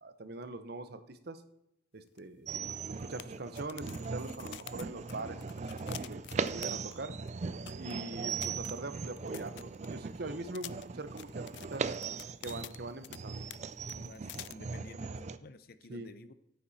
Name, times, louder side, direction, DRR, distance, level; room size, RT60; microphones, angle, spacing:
voice 1, 0.0-1.4 1.9-2.5 3.0-5.8 6.1-7.2 7.8-11.9 12.4-13.5 15.9-16.1, right 2 dB, 60° right, 11 dB, 0.9 m, -43 dB
sound 1, 2.2-2.3 2.5-2.6 3.2-7.0 7.3-7.4 7.7-7.9 8.3-10.1 10.5-13.2 13.5-13.6 13.9-14.5, left 13 dB, 80° left, 0.3 m, -48 dB
sound 2, 2.5-15.4, right 5 dB, 40° right, 0.4 m, -39 dB
voice 2, 14.0-16.3, left 2 dB, 60° left, 13 dB, 0.7 m, -52 dB
10.0 x 9.5 x 4.2 m, 0.84 s
head